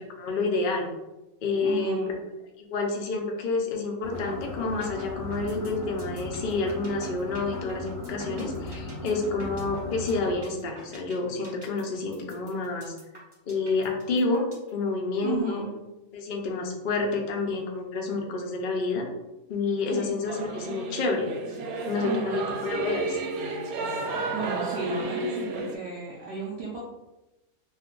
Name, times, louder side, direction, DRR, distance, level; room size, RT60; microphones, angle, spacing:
voice 1, 0.2-0.9 1.4-2.0 2.6-12.9 13.5-14.5 14.7-15.6 16.1-19.0 19.5-21.3 21.9-23.2, left 3 dB, 65° left, 1 dB, 0.5 m, -29 dB
voice 2, 1.6-2.1 15.2-15.7 19.9-20.2 22.0-22.5 24.3-26.8, right 3 dB, 60° right, -5 dB, 0.7 m, -34 dB
sound 1, 4.0-10.3, left 2 dB, 45° left, 0.8 m, -37 dB
sound 2, 4.1-4.3 4.6-14.7, right 1 dB, 25° right, 0.6 m, -46 dB
Singing / Musical instrument, 20.3-25.8, right 3 dB, 80° right, 1.0 m, -32 dB
2.6 x 2.4 x 3.6 m, 0.99 s
omnidirectional pair, 1.5 m